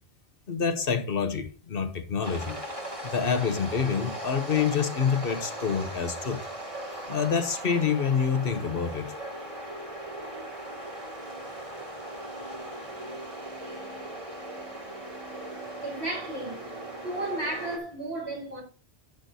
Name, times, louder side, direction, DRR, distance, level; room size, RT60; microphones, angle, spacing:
voice 1, 0.5-2.6 3.0-6.4 7.1-9.1, left 6 dB, 60° left, 1.1 m, -27 dB
sound 1, 2.2-17.8, right 1 dB, 30° right, 2.1 m, -38 dB
voice 2, 15.8-16.6 17.0-18.6, right 2 dB, 70° right, 4.9 m, -33 dB
10.0 x 9.8 x 2.7 m
omnidirectional pair, 1.1 m